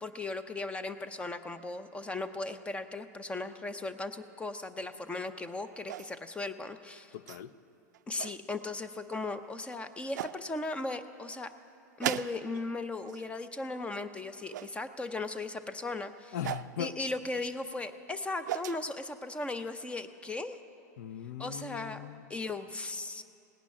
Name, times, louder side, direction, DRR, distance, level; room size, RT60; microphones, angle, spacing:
voice 1, 0.0-7.1 8.1-11.5 12.0-16.4 16.8-20.6 21.4-23.2, left 2 dB, 10° left, 11 dB, 0.6 m, -37 dB
sound 1, 5.9-6.4 7.3-7.4 7.9-8.4 9.4-9.5 10.1-10.4 12.0-12.7 13.0-13.4 14.5-14.7 16.4-16.7 18.1-18.8, right 12 dB, 80° right, 0.4 m, -37 dB
voice 2, 7.1-7.5 16.3-16.9 21.0-22.3, left 9 dB, 70° left, 15 dB, 0.6 m, -39 dB
17.5 x 6.1 x 9.6 m, 2.6 s
hypercardioid pair, 120°, 10 cm